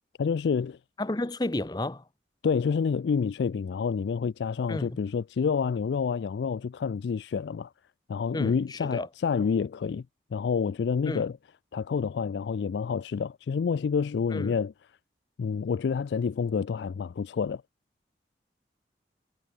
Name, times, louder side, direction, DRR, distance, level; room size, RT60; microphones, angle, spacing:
voice 1, 0.2-0.8 2.4-7.7 8.1-10.0 10.3-11.4 11.7-14.7 15.4-17.6, left 6 dB, 80° left, 0.3 m, -28 dB
voice 2, 1.0-2.0 4.7-5.0 8.3-9.1 11.1-11.2 14.3-14.6, left 1 dB, 25° left, 0.7 m, -31 dB
head